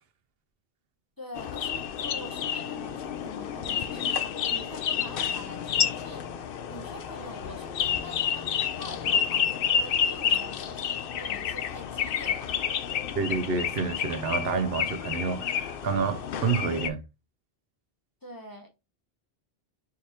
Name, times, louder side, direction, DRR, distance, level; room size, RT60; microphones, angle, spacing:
voice 1, 1.2-6.3 6.7-8.5 8.8-12.6 18.2-18.7, equal, 20° left, 0.8 m, -45 dB
sound 1, 1.4-16.9, left 8 dB, 65° left, 0.7 m, -30 dB
voice 2, 13.1-17.0, right 5 dB, 70° right, 0.8 m, -29 dB
4.6 x 3.4 x 2.8 m
omnidirectional pair, 1.1 m